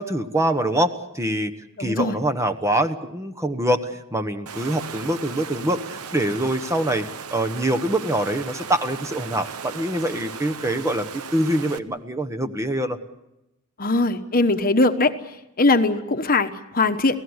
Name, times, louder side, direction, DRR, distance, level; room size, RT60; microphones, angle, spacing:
voice 1, 0.0-1.5 1.8-7.1 7.3-13.0, right 1 dB, 15° right, 8 dB, 1.2 m, -24 dB
voice 2, 1.8-2.2 13.8-15.1 15.6-17.2, left 2 dB, 40° left, 8 dB, 1.2 m, -20 dB
Water, 4.5-11.8, right 6 dB, 80° right, 1.1 m, -37 dB
29.0 x 17.5 x 8.1 m, 0.89 s
head